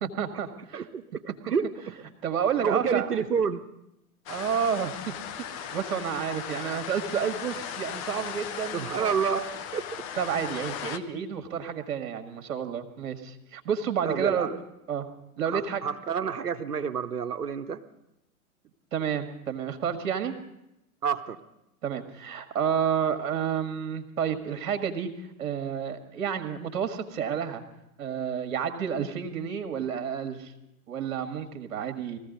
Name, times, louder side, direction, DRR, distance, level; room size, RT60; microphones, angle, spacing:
voice 1, 0.0-0.9 2.2-3.1 4.3-5.1 5.5-9.2 10.2-14.5 14.9-15.1 15.4-15.8 18.9-20.3 21.8-25.1 25.4-27.6 28.0-30.5 30.9-32.2, right 8 dB, 60° right, 7 dB, 1.6 m, -30 dB
voice 2, 0.7-1.7 2.6-3.6 8.7-9.9 14.0-14.5 15.5-17.8 21.0-21.4, right 6 dB, 85° right, 11 dB, 0.9 m, -29 dB
sound 1, 4.3-11.0, left 8 dB, 25° left, 0.5 m, -37 dB
20.5 x 15.0 x 3.9 m, 0.86 s
figure-of-eight pair, 105°, 46 cm